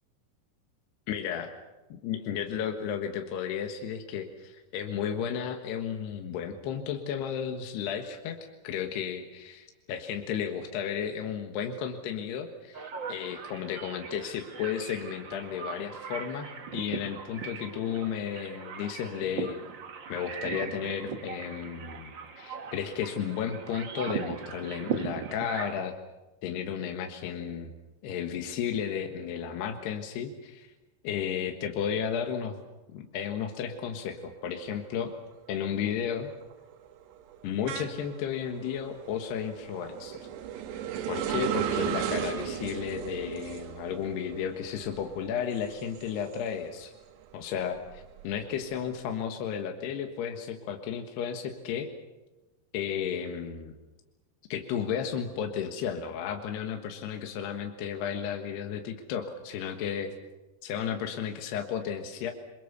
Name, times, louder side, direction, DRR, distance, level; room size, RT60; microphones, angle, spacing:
voice 1, 1.1-1.5 1.9-8.4 8.6-19.6 20.1-26.0 26.4-27.7 28.0-30.7 31.0-32.6 32.9-35.1 35.5-36.3 37.4-40.2 41.1-46.9 47.3-51.9 52.7-53.7 54.5-60.1 60.6-62.3, left 8 dB, 75° left, 5 dB, 3.5 m, -33 dB
sound 1, 12.7-25.8, right 6 dB, 70° right, 1.1 m, -39 dB
sound 2, 34.8-35.2 35.5-46.8 47.2-48.9, right 10 dB, 90° right, 3.6 m, -36 dB
28.5 x 22.5 x 6.8 m, 1.1 s
omnidirectional pair, 4.8 m